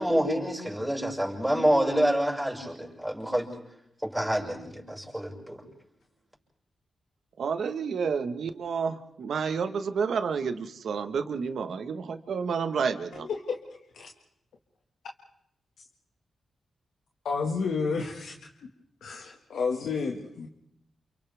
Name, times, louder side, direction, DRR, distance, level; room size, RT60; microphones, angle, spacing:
voice 1, 0.0-3.5 4.0-5.6, equal, 5° right, -1 dB, 6.2 m, -27 dB
voice 2, 7.4-13.3, right 6 dB, 75° right, 8 dB, 1.4 m, -30 dB
voice 3, 13.1-13.6 13.9-14.1 17.2-18.4 19.0-20.5, left 5 dB, 85° left, 1 dB, 1.9 m, -30 dB
29.5 x 29.0 x 3.6 m, 0.76 s
cardioid pair, 95°, 0 cm